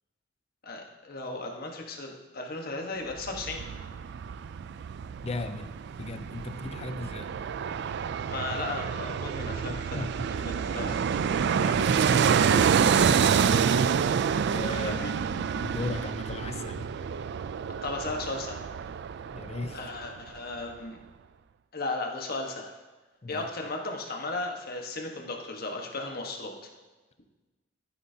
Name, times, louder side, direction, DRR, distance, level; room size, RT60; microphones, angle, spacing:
voice 1, 0.6-3.6 8.3-10.0 10.4-11.0 14.8-15.1 17.8-18.6 19.7-21.0 21.7-22.7 23.3-26.5, left 2 dB, 50° left, 2 dB, 1.3 m, -35 dB
Fixed-wing aircraft airplane, 3.1-20.1 20.4-20.5, right 7 dB, 60° right, 0.3 m, -28 dB
voice 2, 5.2-7.3 9.7-10.5 10.8-11.1 11.5-13.8 14.5-16.9 19.3-19.9 23.2-23.5, left 2 dB, 30° left, 9 dB, 0.5 m, -38 dB
13.5 x 9.3 x 2.8 m, 1.2 s
head